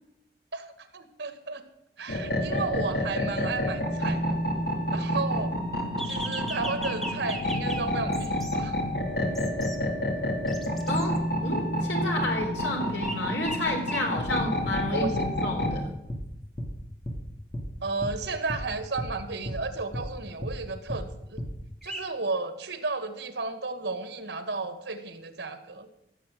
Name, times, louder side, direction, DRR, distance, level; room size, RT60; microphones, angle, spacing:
voice 1, 0.5-1.6 2.0-4.4 4.9-5.5 6.1-8.7 14.9-15.2 17.8-21.4 21.8-25.9, right 3 dB, 85° right, 9 dB, 1.8 m, -33 dB
sound 1, 2.1-15.8, equal, 60° left, 2.7 m, -29 dB
sound 2, 6.0-7.8 8.1-8.6 9.3-9.8 10.5-11.2 13.0-13.2 13.4-14.1 14.7-14.8 21.8-22.0, right 1 dB, ahead, 1.3 m, -38 dB
voice 2, 10.9-15.9, left 1 dB, 90° left, 1 dB, 3.6 m, -31 dB
sound 3, 14.2-14.3 14.7-14.8 15.1-15.3 15.6-15.8 16.1-16.3 16.6-16.7 17.0-17.2 17.5-17.7 18.0-18.2 18.5-18.7 19.0-19.1 19.5-19.6 19.9-20.1 20.4-20.6 20.9-21.1 21.4-21.5, equal, 35° left, 2.2 m, -34 dB
15.5 x 7.5 x 7.8 m, 0.83 s
head